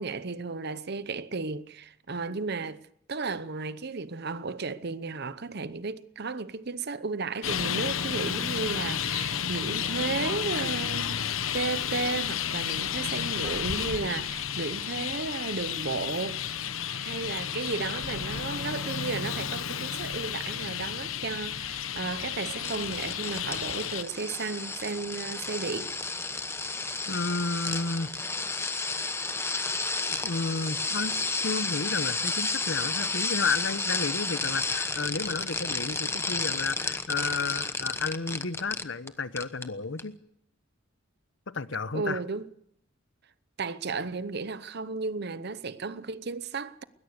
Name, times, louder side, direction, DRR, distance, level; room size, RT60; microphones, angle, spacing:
voice 1, 0.0-2.8 3.1-11.2 11.5-16.6 16.9-26.2 41.9-42.5 43.6-46.8, right 4 dB, 55° right, 0.9 m, -34 dB
Traffic noise roadway noise, 7.4-24.0, left 8 dB, 90° left, 1.0 m, -32 dB
sound 1, 22.6-39.1 39.4-39.7 40.0-40.1, left 3 dB, 15° left, 1.0 m, -32 dB
voice 2, 27.1-28.1 30.1-40.2 41.5-42.2, left 4 dB, 65° left, 1.0 m, -32 dB
20.5 x 20.5 x 6.7 m
head